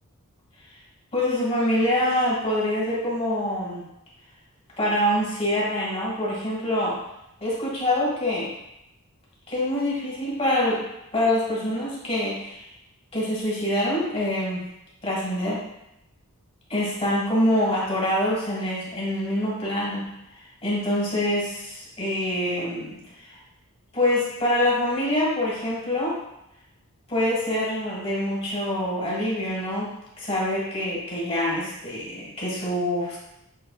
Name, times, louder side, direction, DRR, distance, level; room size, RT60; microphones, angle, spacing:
voice 1, 1.1-3.8 4.8-7.0 7.4-8.5 9.5-10.8 11.1-12.6 13.1-14.6 15.0-15.6 16.7-20.1 20.3-23.4 23.9-26.2 27.1-33.2, left 1 dB, 25° left, -5 dB, 1.5 m, -25 dB
6.5 x 3.3 x 2.3 m, 0.84 s
head